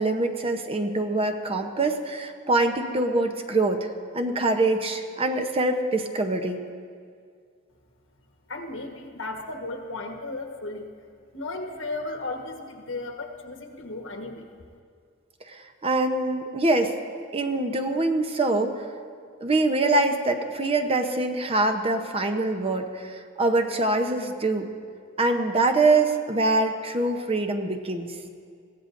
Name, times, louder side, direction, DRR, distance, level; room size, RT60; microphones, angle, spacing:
voice 1, 0.0-3.9 4.1-6.6 15.5-16.9 17.3-18.8 19.4-24.7 25.2-28.1, right 2 dB, 30° right, 6 dB, 0.8 m, -24 dB
voice 2, 8.5-10.9 11.3-14.5, left 2 dB, 75° left, 3 dB, 1.3 m, -35 dB
22.0 x 16.0 x 2.6 m, 2.1 s
head